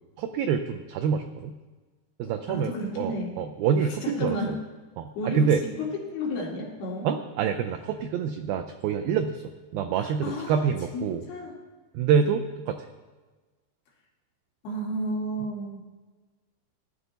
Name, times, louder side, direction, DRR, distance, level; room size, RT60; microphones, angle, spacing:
voice 1, 0.2-1.5 2.2-4.6 5.0-5.6 7.0-11.2 11.9-12.9, right 7 dB, 85° right, 6 dB, 2.1 m, -26 dB
voice 2, 2.5-3.3 3.8-4.5 5.2-5.5 6.1-7.1 10.0-10.6 10.9-11.5 14.6-15.8, equal, 70° left, -2 dB, 3.6 m, -32 dB
17.0 x 10.5 x 4.0 m, 1.3 s
omnidirectional pair, 4.7 m